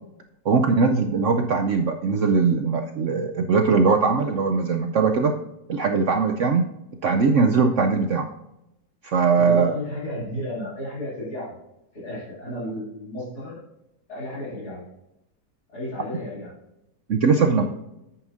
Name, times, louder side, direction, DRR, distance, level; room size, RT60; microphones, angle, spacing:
voice 1, 0.4-5.3 5.7-6.7 7.0-8.3 9.0-9.8 17.1-17.6, right 4 dB, 70° right, 5 dB, 0.7 m, -20 dB
voice 2, 9.3-11.6 11.9-13.6 14.1-14.9 15.7-16.5 17.4-17.6, left 1 dB, 60° left, -9 dB, 3.4 m, -33 dB
9.8 x 8.7 x 2.6 m, 0.88 s
omnidirectional pair, 1.9 m